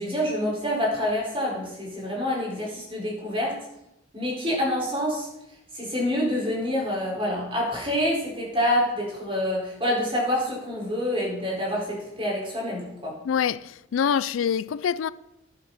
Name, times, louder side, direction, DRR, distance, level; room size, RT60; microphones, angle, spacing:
voice 1, 0.0-3.6 4.1-5.3 5.7-13.1, left 1 dB, 30° right, 4.6 m, -27 dB
voice 2, 13.2-15.1, left 7 dB, 85° left, 0.4 m, -25 dB
11.5 x 10.5 x 4.1 m
head